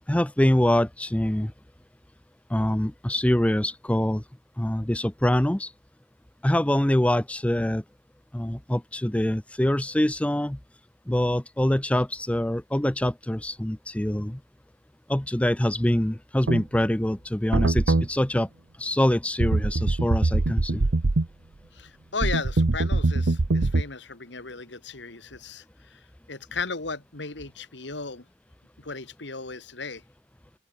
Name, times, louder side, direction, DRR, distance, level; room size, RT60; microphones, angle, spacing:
voice 1, 0.1-1.5 2.5-4.2 4.6-5.7 6.4-7.8 8.3-10.6 11.1-14.4 15.1-18.5 18.8-20.9, left 1 dB, 5° left, 0.6 m, -24 dB
sound 1, 16.5-16.6 17.5-18.1 19.4-21.3 22.2-23.8, right 2 dB, 80° right, 0.9 m, -23 dB
voice 2, 21.7-26.0 26.3-28.2 28.8-30.0, left 4 dB, 70° left, 2.3 m, -35 dB
open air
head